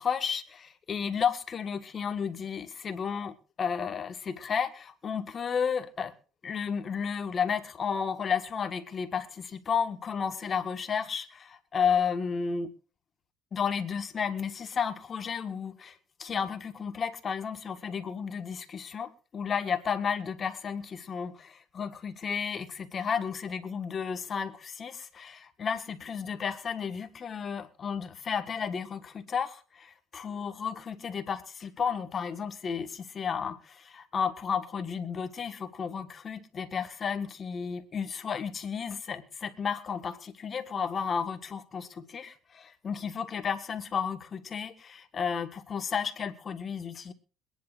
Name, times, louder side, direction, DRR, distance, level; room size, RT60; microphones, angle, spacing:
voice 1, 0.0-6.1 6.4-12.7 13.5-47.1, left 6 dB, 35° left, 1.4 m, -32 dB
23.5 x 10.5 x 2.5 m
supercardioid pair, 100°, 0 cm